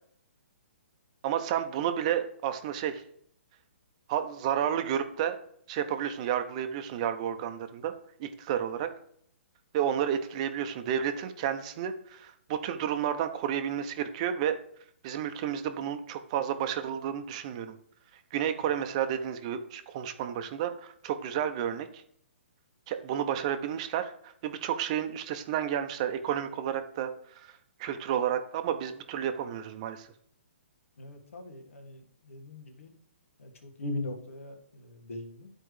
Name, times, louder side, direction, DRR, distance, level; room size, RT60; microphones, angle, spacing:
voice 1, 1.2-3.0 4.1-5.4 5.7-7.9 8.2-8.9 9.7-14.6 15.0-17.8 18.3-21.9 22.9-27.1 27.4-27.5 27.8-30.1, right 9 dB, 30° right, 8 dB, 0.6 m, -31 dB
voice 2, 31.0-32.9 33.4-35.5, left 2 dB, 90° left, 4 dB, 1.8 m, -40 dB
12.5 x 4.5 x 3.2 m, 0.64 s
hypercardioid pair, 160°, 7 cm